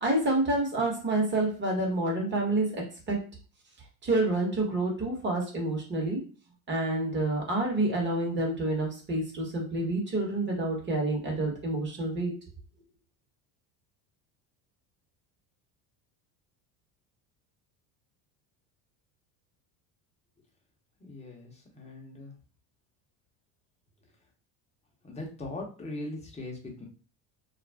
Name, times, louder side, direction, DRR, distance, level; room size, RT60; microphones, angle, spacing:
voice 1, 0.0-3.2 4.0-6.2 6.7-12.4, right 2 dB, 25° right, -1 dB, 1.1 m, -28 dB
voice 2, 21.0-22.3 25.0-26.9, left 2 dB, 15° left, 0 dB, 0.7 m, -40 dB
2.4 x 2.0 x 3.2 m, 0.37 s
supercardioid pair, 120°, 43 cm